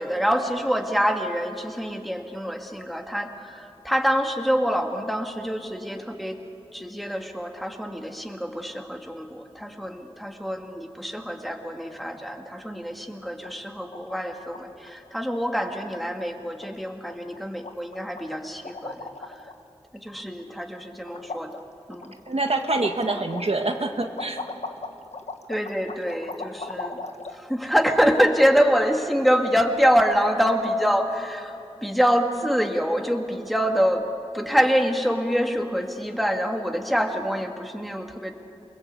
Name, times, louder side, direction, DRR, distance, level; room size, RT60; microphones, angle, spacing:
voice 1, 0.0-6.4 6.7-19.3 20.0-21.6 21.9-22.1 25.5-27.0 27.3-31.6 31.8-34.1 34.3-38.3, equal, ahead, 3 dB, 2.4 m, -25 dB
sound 1, 12.1-12.6 12.9-13.0 13.2-13.5 13.8-14.6 14.9-15.1 15.4-15.5 15.8-16.3 16.6-16.8 17.1-17.4 17.6-19.6 20.0-20.7 21.0-27.4, left 3 dB, 85° left, 1.3 m, -38 dB
voice 2, 22.3-24.4, right 2 dB, 65° right, 4 dB, 1.5 m, -26 dB
28.5 x 21.0 x 8.3 m, 2.9 s
wide cardioid pair, 55°, 11 cm